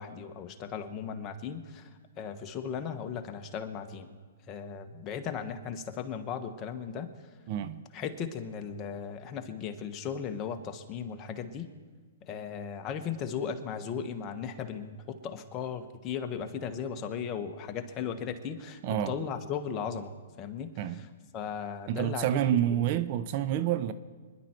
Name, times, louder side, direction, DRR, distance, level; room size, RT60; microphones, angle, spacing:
voice 1, 0.0-1.9 2.2-4.1 4.5-7.1 7.9-11.7 12.3-21.1 21.3-22.6, left 7 dB, 30° left, 1.3 m, -37 dB
voice 2, 7.5-7.9 18.8-19.1 20.8-21.0 21.9-23.9, right 11 dB, 45° right, 0.7 m, -28 dB
25.5 x 11.0 x 4.5 m
hypercardioid pair, 135°, 0 cm